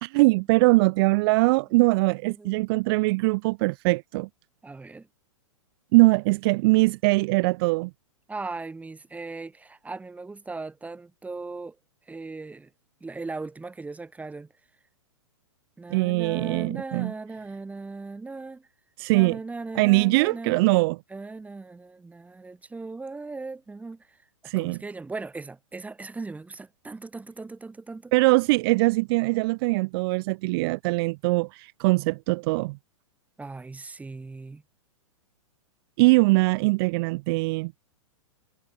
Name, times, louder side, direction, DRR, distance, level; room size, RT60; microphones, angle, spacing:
voice 1, 0.0-4.3 5.9-7.9 15.9-17.1 19.0-19.4 19.8-21.0 24.5-24.8 28.1-32.8 36.0-37.7, right 24 dB, 45° right, 1.8 m, -22 dB
voice 2, 2.2-2.8 4.6-5.1 8.3-11.8 12.1-12.7 13.0-14.5 15.8-18.7 19.1-20.6 21.1-24.2 24.4-28.1 33.4-34.6, right 3 dB, 10° right, 7.9 m, -38 dB
hypercardioid pair, 120°, 17 cm